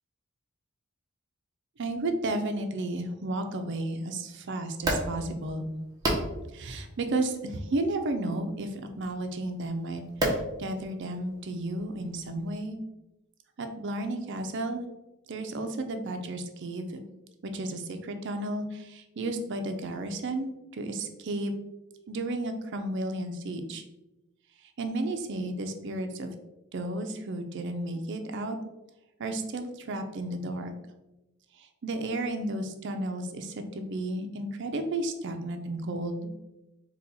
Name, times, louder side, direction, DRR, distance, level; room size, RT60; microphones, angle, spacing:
voice 1, 1.8-5.7 6.5-10.0 10.3-12.8 13.6-14.9 15.3-17.0 17.4-21.5 22.1-23.8 24.8-26.3 26.7-28.6 29.2-30.7 31.6-36.3, right 2 dB, 55° right, 6 dB, 0.5 m, -33 dB
sound 1, 4.7-12.5, right 1 dB, 15° right, 0.7 m, -35 dB
4.1 x 2.2 x 4.1 m, 0.98 s
head